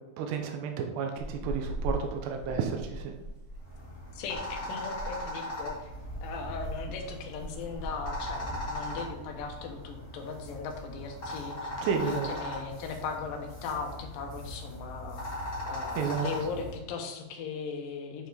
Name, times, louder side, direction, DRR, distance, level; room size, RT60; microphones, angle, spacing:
voice 1, 0.2-3.1 11.8-12.3 16.0-16.5, right 6 dB, 90° right, 4 dB, 2.9 m, -32 dB
sound 1, 1.2-9.7 9.9-10.2 10.5-11.4 11.7-12.1 12.3-12.4 12.6-13.1 13.6-14.1, equal, 50° right, 1.7 m, -41 dB
sound 2, 3.6-16.8, left 1 dB, 20° left, 1.8 m, -39 dB
voice 2, 4.2-5.9 6.2-11.7 12.0-15.3 15.7-18.3, left 5 dB, 70° left, 2 dB, 2.4 m, -38 dB
8.2 x 4.5 x 4.0 m, 1.0 s
omnidirectional pair, 4.7 m